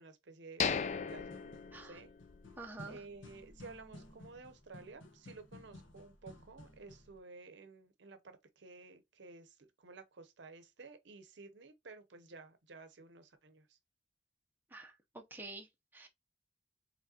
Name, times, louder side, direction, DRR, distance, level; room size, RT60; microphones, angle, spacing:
voice 1, 0.0-1.4 1.8-2.1 2.9-13.8, right 3 dB, 70° right, 0.7 m, -53 dB
sound 1, 0.6-2.5 2.8-2.9 3.5-3.6, left 6 dB, 35° left, 0.3 m, -37 dB
sound 2, 1.1-7.2, left 1 dB, 85° left, 1.2 m, -55 dB
voice 2, 2.6-3.0 14.7-16.1, right 3 dB, 10° right, 0.6 m, -49 dB
4.8 x 3.3 x 2.8 m
head